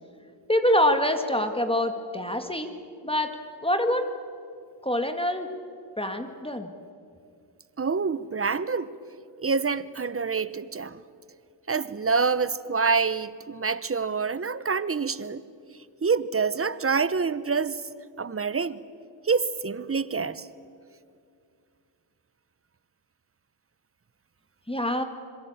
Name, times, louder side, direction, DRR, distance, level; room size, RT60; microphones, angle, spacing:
voice 1, 0.5-2.7 3.0-3.3 3.6-4.1 4.8-5.5 6.0-6.7 24.7-25.0, left 1 dB, 10° left, 6 dB, 1.9 m, -25 dB
voice 2, 7.8-8.9 9.4-11.0 11.7-15.4 16.0-17.8 18.2-18.8 19.2-20.5, right 5 dB, 30° right, 15 dB, 1.0 m, -26 dB
26.0 x 22.5 x 8.8 m, 2.3 s
cardioid pair, 75°, 46 cm